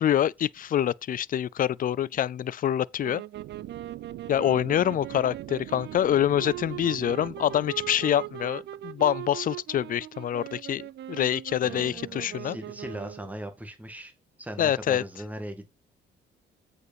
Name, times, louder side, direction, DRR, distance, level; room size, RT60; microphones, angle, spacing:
voice 1, 0.0-3.2 4.3-10.8 11.1-12.6 14.6-15.0, left 10 dB, 45° left, 0.4 m, -26 dB
sound 1, 3.0-13.4, right 14 dB, 60° right, 0.5 m, -40 dB
sound 2, 3.3-9.3, right 14 dB, 85° right, 0.9 m, -44 dB
voice 2, 11.6-15.7, right 1 dB, 10° right, 2.0 m, -39 dB
8.2 x 5.1 x 4.6 m
cardioid pair, 90°, 20 cm